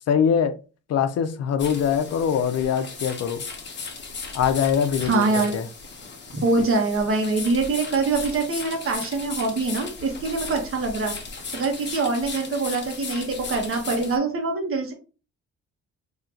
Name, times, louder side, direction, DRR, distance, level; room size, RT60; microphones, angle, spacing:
voice 1, 0.1-0.6 0.9-3.4 4.3-5.7, left 7 dB, 55° left, 0.6 m, -23 dB
sound 1, 1.6-14.2, left 4 dB, 35° left, 1.0 m, -36 dB
voice 2, 5.0-5.5 6.4-11.1 11.5-14.9, right 3 dB, 45° right, 1.3 m, -24 dB
3.0 x 2.8 x 3.8 m
cardioid pair, 90°, 30 cm